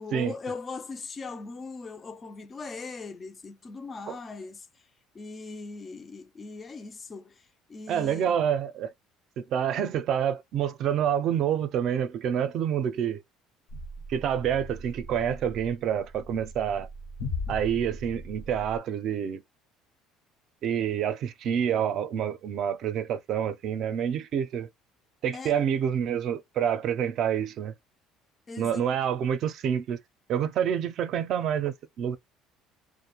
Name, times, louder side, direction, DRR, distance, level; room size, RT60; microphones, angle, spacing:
voice 1, 0.0-4.9 5.1-8.4 25.3-25.6 28.5-28.9, left 4 dB, 25° left, 0.3 m, -40 dB
voice 2, 7.9-8.9 9.4-13.2 14.1-16.9 17.5-19.4 20.6-24.7 25.2-27.7 28.6-30.0 30.3-32.2, right 8 dB, 55° right, 0.4 m, -27 dB
sound 1, 13.7-18.8, left 2 dB, 75° left, 0.8 m, -39 dB
2.4 x 2.1 x 2.8 m
cardioid pair, 120°, 0 cm